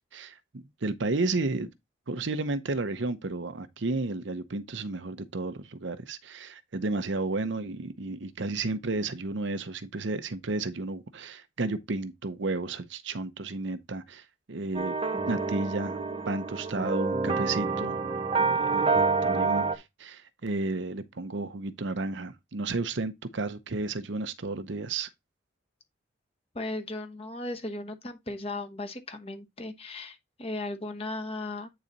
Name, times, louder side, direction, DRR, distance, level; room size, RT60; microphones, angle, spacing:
voice 1, 0.1-1.7 2.1-14.9 15.3-18.0 18.3-25.1, right 3 dB, 65° right, 0.7 m, -32 dB
sound 1, 14.7-19.7, right 4 dB, 25° right, 0.7 m, -27 dB
voice 2, 26.5-31.7, left 2 dB, 30° left, 1.0 m, -36 dB
8.7 x 4.1 x 3.9 m
head